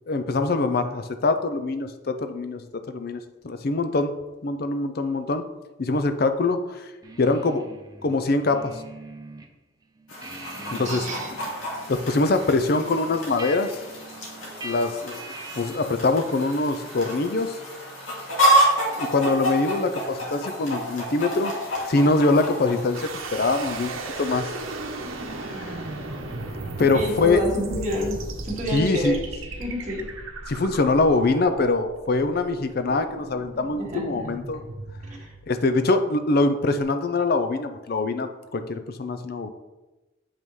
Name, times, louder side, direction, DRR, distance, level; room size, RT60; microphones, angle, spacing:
voice 1, 0.1-4.1 4.4-5.4 5.8-6.8 7.2-7.6 8.0-8.8 10.7-11.1 11.9-13.8 14.6-15.2 15.6-17.6 19.0-21.5 21.9-24.5 25.4-25.8 26.8-27.4 28.7-29.2 30.5-34.6 35.5-39.5, left 3 dB, 50° left, 9 dB, 0.5 m, -23 dB
sound 1, 7.0-9.5 9.8-16.0, right 1 dB, 20° right, 0.5 m, -43 dB
Chicken rooster, 10.1-23.0, right 1 dB, 80° left, 2.1 m, -28 dB
voice 2, 10.8-11.3 26.8-29.2 29.6-30.1 33.8-34.2 35.2-35.3, equal, 35° right, -3 dB, 1.5 m, -28 dB
sound 2, 22.9-35.9, right 2 dB, 85° right, 0.9 m, -36 dB
7.3 x 5.3 x 3.2 m, 1.1 s
head